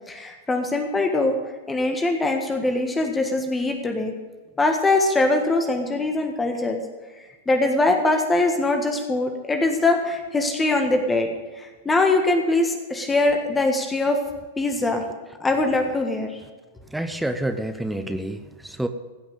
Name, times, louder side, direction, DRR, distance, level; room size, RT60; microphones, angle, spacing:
voice 1, 0.1-1.3 1.7-4.1 4.6-6.8 7.5-14.2 14.6-15.0 15.4-16.4, left 2 dB, 15° left, 3 dB, 1.5 m, -22 dB
voice 2, 16.9-18.9, right 1 dB, 5° right, 8 dB, 0.8 m, -28 dB
16.5 x 5.9 x 8.2 m, 1.3 s
hypercardioid pair, 105°, 0 cm